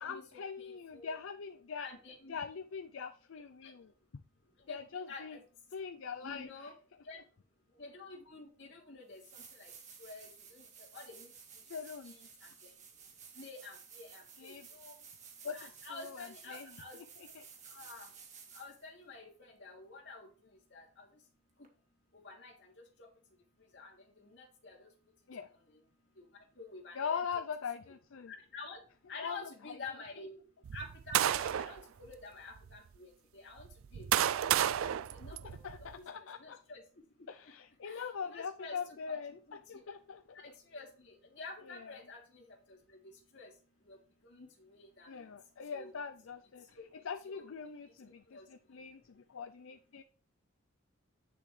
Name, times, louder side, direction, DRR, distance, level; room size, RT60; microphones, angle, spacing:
voice 1, 0.0-1.9 2.3-3.9 4.7-5.4 5.7-6.7 11.7-12.1 14.4-14.7 15.4-16.8 17.2-17.5 25.3-25.5 26.9-28.3 29.2-29.5 34.6-34.9 35.3-36.6 37.3-39.4 39.7-40.4 41.7-42.0 45.1-50.0, left 6 dB, 80° left, 0.5 m, -42 dB
voice 2, 0.6-1.1 1.8-2.4 3.6-3.7 4.7-4.8 5.1-5.4 6.2-6.7 7.1-7.2 7.8-9.7 10.0-10.6 10.9-11.3 12.0-12.3 13.4-14.9 15.5-17.0 17.7-18.1 18.5-20.3 20.7-21.1 22.2-22.7 23.0-23.1 23.7-23.9 24.3-24.9 26.2-26.3 26.6-27.2 28.3-28.8 29.1-30.4 30.7-33.7 33.9-34.5 35.1-35.9 36.4-36.8 37.8-38.8 39.1-39.2 39.5-39.6 40.3-42.4 43.3-43.5 43.9-44.0 44.3-45.1 45.7-45.9 46.8-46.9 47.3-47.4 48.3-48.4, left 3 dB, 55° left, 3.0 m, -49 dB
sound 1, 8.6-8.7 9.1-18.9 21.6-21.7, right 6 dB, 35° right, 1.7 m, -54 dB
sound 2, 30.6-31.8 32.6-32.7 33.6-35.9, right 10 dB, 85° right, 0.4 m, -31 dB
9.8 x 6.8 x 3.3 m
head